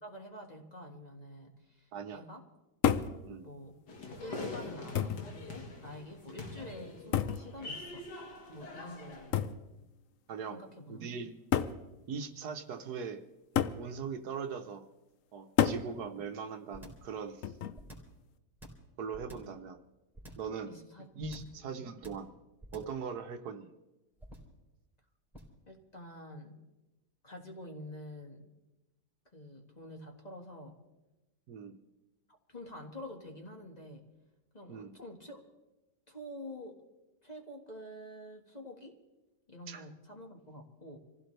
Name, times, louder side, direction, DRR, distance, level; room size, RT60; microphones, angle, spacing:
voice 1, 0.0-2.4 3.4-3.7 4.2-8.0 8.5-9.5 10.5-11.1 20.7-21.1 21.4-21.5 25.7-26.6 27.2-28.4 29.3-30.8 32.5-34.0 34.5-35.5 36.1-36.8 37.2-38.9 39.5-41.0, left 1 dB, 25° left, 1 dB, 1.8 m, -47 dB
voice 2, 1.9-2.3 3.2-3.5 10.3-10.6 10.9-11.4 12.1-13.2 13.8-14.9 15.3-17.5 19.0-19.8 20.4-20.7 21.1-22.3 22.7-23.7 31.5-31.8 34.7-34.9 39.7-39.8, right 6 dB, 70° right, 7 dB, 1.4 m, -40 dB
sound 1, 2.8-3.2 4.2-4.3 4.9-5.3 7.1-7.5 9.3-9.6 10.7-10.8 11.5-11.8 13.6-13.8 15.6-15.9 17.4-17.8, left 9 dB, 60° left, 0.9 m, -29 dB
sound 2, 3.9-9.4, left 2 dB, 85° left, 2.5 m, -44 dB
sound 3, 16.7-17.1 17.7-18.2 18.6-19.6 20.2-20.5 21.2-21.6 22.0-22.3 22.6-23.0 24.2-24.6 25.3-25.6, right 1 dB, ahead, 3.2 m, -49 dB
26.0 x 16.0 x 3.3 m, 1.0 s
omnidirectional pair, 1.7 m